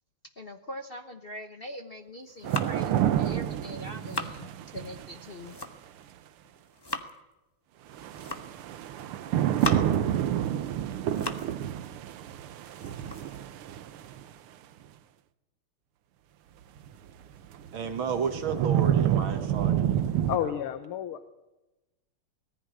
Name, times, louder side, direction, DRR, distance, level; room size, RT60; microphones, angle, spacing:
voice 1, 0.4-5.6, left 1 dB, 40° left, 5 dB, 0.9 m, -42 dB
sound 1, 2.1-3.0 3.6-4.4 5.2-6.0 6.4-7.2 8.0-8.6 9.2-10.1 10.5-11.6 11.9-12.0 12.5-14.2, left 2 dB, 15° left, 1.0 m, -38 dB
sound 2, 2.4-5.6 7.9-14.2 16.9-17.0 17.5-20.4, right 11 dB, 90° right, 1.8 m, -28 dB
voice 2, 17.7-20.5, right 6 dB, 70° right, 8 dB, 2.4 m, -33 dB
voice 3, 20.3-21.3, left 10 dB, 85° left, 10 dB, 1.9 m, -31 dB
19.0 x 14.5 x 9.6 m, 1.0 s
omnidirectional pair, 2.4 m